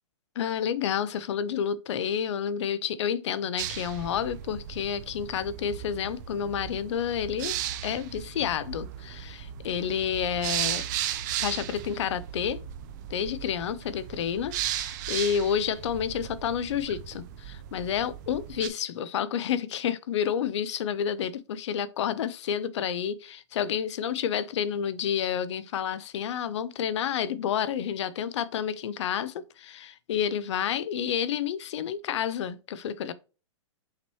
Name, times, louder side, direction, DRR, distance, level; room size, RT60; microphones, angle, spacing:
voice 1, 0.4-10.9 11.4-12.6 13.1-33.1, left 8 dB, 70° left, 0.5 m, -30 dB
sound 1, 3.6-18.7, right 11 dB, 40° right, 0.5 m, -36 dB
5.7 x 3.0 x 3.0 m
hypercardioid pair, 160°, 16 cm